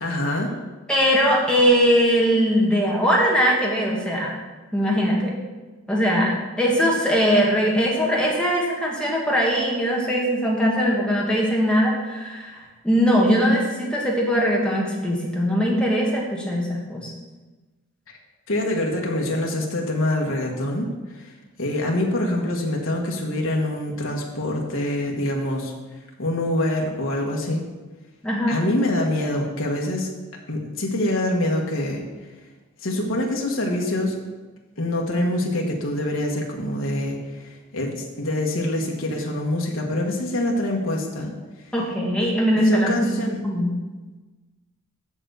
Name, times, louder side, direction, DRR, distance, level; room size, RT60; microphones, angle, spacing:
voice 1, 0.0-0.6 18.5-20.9 21.2-21.3 21.6-25.7 26.2-27.6 28.5-30.1 30.5-32.0 32.8-34.2 34.8-41.3 42.2-42.3 42.7-43.4, left 1 dB, 65° left, -1 dB, 1.5 m, -25 dB
voice 2, 0.9-4.3 4.7-5.3 5.9-17.1 28.2-28.6 41.7-43.7, equal, 5° left, -4 dB, 1.7 m, -21 dB
7.2 x 6.8 x 6.4 m, 1.2 s
head